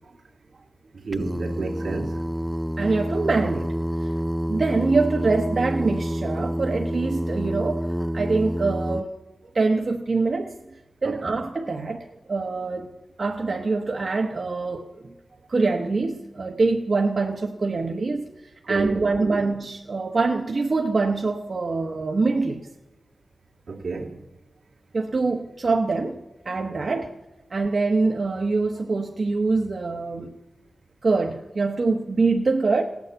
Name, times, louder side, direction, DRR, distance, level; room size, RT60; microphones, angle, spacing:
voice 1, 0.9-2.3 11.0-11.4 18.6-19.4 23.7-24.2 26.9-27.0, right 4 dB, 90° right, 2.5 m, -31 dB
Singing, 1.1-9.0, equal, 10° right, 0.5 m, -28 dB
voice 2, 2.8-3.7 4.0-4.1 4.5-9.1 9.5-10.5 11.0-12.9 13.2-15.1 15.5-22.7 24.9-26.2 26.4-27.1 27.5-30.3 31.0-32.8, right 3 dB, 60° right, 1.1 m, -24 dB
17.0 x 9.5 x 8.0 m
wide cardioid pair, 70°, 0 cm